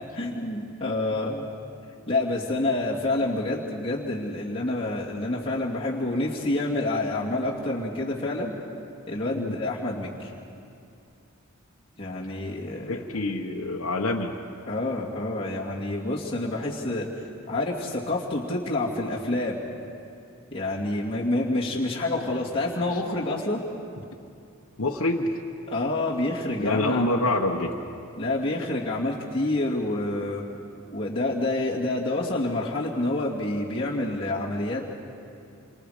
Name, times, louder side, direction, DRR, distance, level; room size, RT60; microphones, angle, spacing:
voice 1, 0.0-1.5 2.1-8.6 9.1-10.3 12.0-13.0 14.7-17.1 17.5-19.6 20.5-23.6 25.7-27.1 28.2-30.4 30.9-34.8, left 2 dB, 25° left, -6 dB, 2.4 m, -28 dB
voice 2, 12.8-14.3 22.9-23.0 24.8-25.4 26.6-27.7, left 2 dB, 75° left, 0 dB, 1.2 m, -26 dB
28.0 x 25.0 x 5.1 m, 2.6 s
head